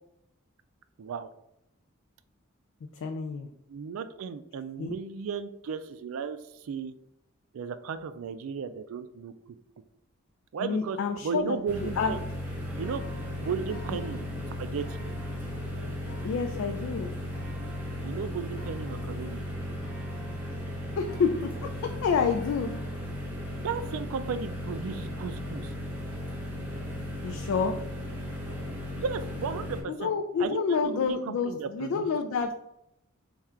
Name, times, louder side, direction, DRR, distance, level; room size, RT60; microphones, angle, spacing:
voice 1, 1.0-1.3 3.7-6.9 7.5-9.3 10.5-12.2 12.8-13.0 13.4-14.2 14.6-15.0 18.0-19.4 23.6-25.7 28.9-30.1 30.4-32.2, right 6 dB, 80° right, 12 dB, 0.3 m, -35 dB
voice 2, 3.0-3.5 4.8-5.0 10.6-12.1 16.2-17.1 21.0-21.5 22.0-22.7 27.2-27.8 29.9-32.5, left 5 dB, 70° left, 5 dB, 0.3 m, -28 dB
sound 1, 11.4-23.2, equal, 40° left, 0.8 m, -51 dB
sound 2, 11.7-29.8, left 1 dB, 10° right, 0.7 m, -36 dB
3.5 x 2.4 x 4.3 m, 0.81 s
head